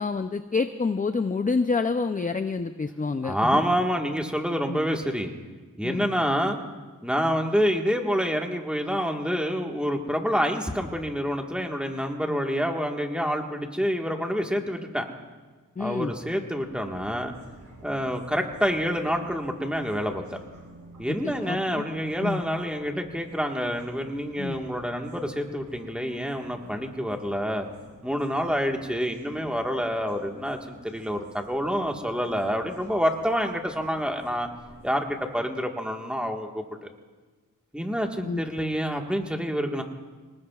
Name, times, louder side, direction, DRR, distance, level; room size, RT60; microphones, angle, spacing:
voice 1, 0.0-3.6 4.7-4.8 5.8-6.1 15.8-16.1 21.1-21.8 22.2-22.4 24.4-24.6 38.3-38.4, left 4 dB, 25° left, 9 dB, 0.5 m, -28 dB
voice 2, 3.2-5.3 5.8-6.6 7.0-15.0 15.8-17.3 17.8-20.2 21.0-27.7 28.0-34.5 34.8-36.9 37.7-39.8, equal, 5° right, 2 dB, 1.6 m, -27 dB
sound 1, 16.6-35.3, right 1 dB, 85° right, 4.8 m, -51 dB
25.0 x 19.5 x 2.4 m, 1.3 s
wide cardioid pair, 80°, 33 cm